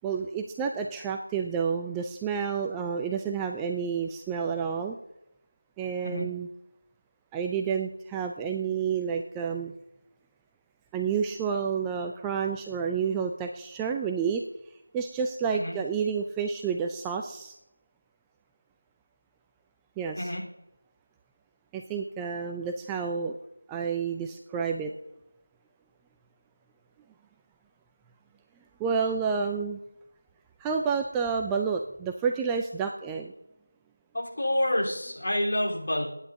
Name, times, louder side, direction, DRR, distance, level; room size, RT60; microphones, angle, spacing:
voice 1, 0.0-5.0 5.8-6.5 7.3-9.7 10.9-14.4 14.9-17.5 20.0-20.3 21.7-23.4 23.7-24.9 28.8-29.8 30.6-33.3, right 6 dB, 5° right, 3 dB, 0.3 m, -30 dB
voice 2, 34.1-36.1, left 1 dB, 45° left, -3 dB, 3.7 m, -28 dB
23.0 x 10.0 x 2.7 m, 0.85 s
figure-of-eight pair, 170°, 0 cm